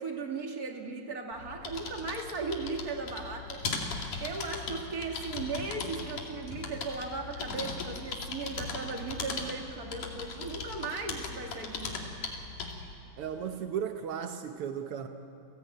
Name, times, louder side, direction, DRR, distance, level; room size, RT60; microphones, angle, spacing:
voice 1, 0.0-3.7 4.2-12.0, right 4 dB, 30° right, 2 dB, 2.2 m, -37 dB
sound 1, 1.3-12.9, left 4 dB, 65° left, 3.9 m, -38 dB
voice 2, 13.2-15.1, right 8 dB, 80° right, 6 dB, 1.2 m, -35 dB
29.5 x 18.5 x 9.2 m, 3.0 s
omnidirectional pair, 3.9 m